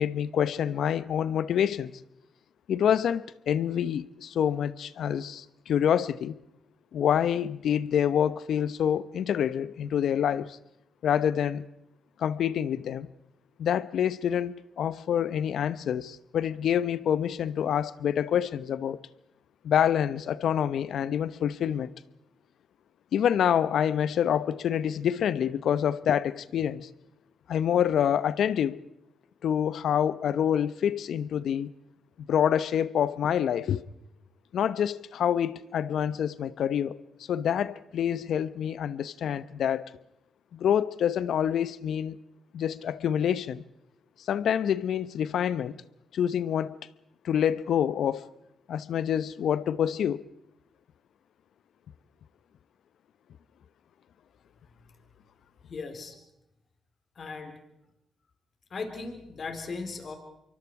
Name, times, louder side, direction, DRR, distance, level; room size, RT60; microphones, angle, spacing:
voice 1, 0.0-2.0 2.7-6.4 6.9-10.6 11.0-11.6 12.2-13.1 13.6-19.0 19.6-21.9 23.1-26.9 27.5-28.8 29.4-31.7 32.2-33.8 34.5-37.0 37.3-39.9 40.5-42.2 42.5-43.6 44.3-45.7 46.1-46.8 47.2-48.2 48.7-50.3, left 9 dB, 75° left, 0.8 m, -27 dB
voice 2, 55.7-56.2 57.2-57.6 58.7-60.2, left 4 dB, 55° left, 4.1 m, -37 dB
26.5 x 23.5 x 4.8 m
supercardioid pair, 55°, 0 cm